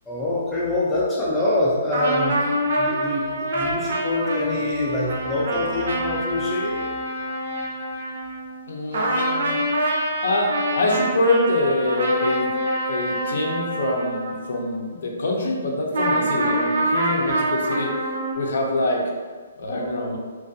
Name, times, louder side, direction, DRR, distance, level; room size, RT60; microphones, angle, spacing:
voice 1, 0.1-2.4 2.7-6.8, left 1 dB, 5° left, -7 dB, 0.4 m, -25 dB
sound 1, 1.9-8.7 8.9-14.9 15.9-18.3, right 1 dB, 65° right, 0.5 m, -25 dB
voice 2, 8.7-9.6 10.2-12.6 12.9-17.9 18.4-19.0 19.6-20.2, left 2 dB, 65° left, 0 dB, 0.5 m, -24 dB
2.4 x 2.2 x 2.6 m, 1.5 s
hypercardioid pair, 170°, 0 cm